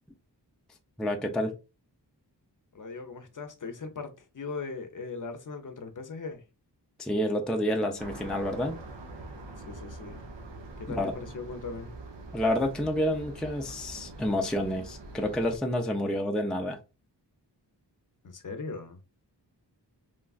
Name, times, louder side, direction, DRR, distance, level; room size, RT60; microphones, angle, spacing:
voice 1, 1.0-1.5 7.0-8.8 11.0-11.1 12.3-16.8, left 1 dB, ahead, 0.4 m, -29 dB
voice 2, 2.7-6.4 9.7-10.2 10.8-11.9 18.2-19.0, left 4 dB, 50° left, 0.6 m, -39 dB
sound 1, 8.0-15.6, right 2 dB, 85° right, 0.7 m, -44 dB
3.1 x 2.3 x 2.3 m
wide cardioid pair, 65°, 42 cm